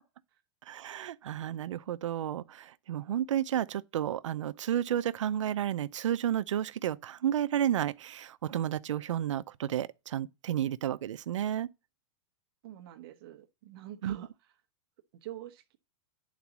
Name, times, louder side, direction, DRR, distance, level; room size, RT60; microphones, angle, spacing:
voice 1, 0.7-11.7 14.0-14.2, right 10 dB, 90° right, 0.7 m, -32 dB
voice 2, 12.6-14.5 15.2-15.8, right 12 dB, 50° right, 1.1 m, -46 dB
10.5 x 4.1 x 6.0 m
supercardioid pair, 150°, 15 cm